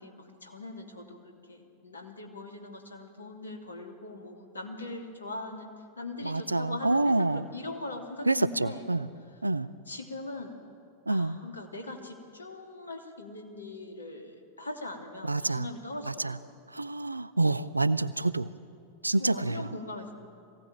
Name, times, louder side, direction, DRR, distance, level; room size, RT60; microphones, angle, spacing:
voice 1, 0.0-5.7 6.0-8.9 9.9-10.6 11.1-16.5 19.2-20.1, left 2 dB, 75° left, 2 dB, 2.8 m, -41 dB
voice 2, 6.2-7.4 8.3-9.1 9.4-9.7 11.1-11.4 15.2-15.7 16.1-16.4 16.7-18.5 19.0-19.7, right 2 dB, 85° right, 16 dB, 0.5 m, -27 dB
22.5 x 17.0 x 9.0 m, 2.4 s
figure-of-eight pair, 90°, 0 cm